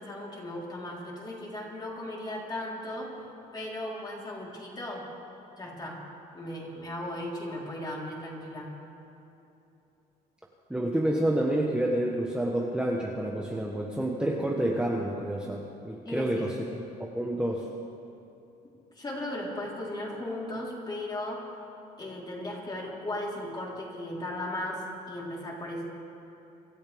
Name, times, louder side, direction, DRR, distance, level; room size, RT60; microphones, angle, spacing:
voice 1, 0.0-3.1 3.5-5.1 5.6-6.0 6.3-8.7 16.0-16.5 19.0-21.5 22.0-25.9, left 1 dB, 25° left, -4 dB, 4.0 m, -36 dB
voice 2, 10.7-16.8 17.1-17.7, right 1 dB, 5° right, -2 dB, 1.2 m, -29 dB
25.5 x 13.0 x 3.6 m, 2.8 s
cardioid pair, 110°, 17 cm